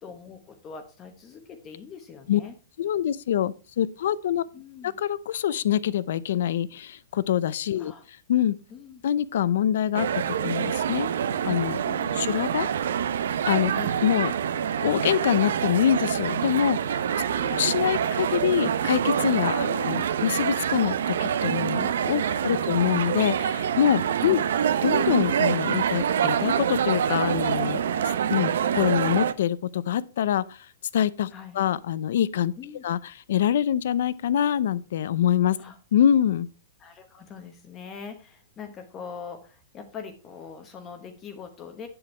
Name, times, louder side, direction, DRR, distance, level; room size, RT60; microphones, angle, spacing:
voice 1, 0.0-2.5 4.5-4.9 7.8-8.0 8.7-9.0 11.8-12.2 13.7-14.0 17.3-17.6 19.5-19.7 22.2-22.7 24.2-24.5 28.0-28.1 31.3-31.6 32.6-32.8 35.6-35.8 36.8-41.9, left 6 dB, 20° left, 1.0 m, -42 dB
voice 2, 2.8-4.4 4.8-7.9 8.3-8.6 9.0-11.1 11.4-11.8 12.2-12.7 13.5-13.7 14.0-14.3 14.8-17.1 17.5-24.4 24.8-27.8 28.3-30.7 30.9-32.5 32.8-35.6 35.9-36.5, left 10 dB, 60° left, 0.6 m, -25 dB
sound 1, 9.9-29.3, right 8 dB, 75° right, 0.8 m, -26 dB
9.0 x 7.8 x 4.4 m
supercardioid pair, 170°, 0 cm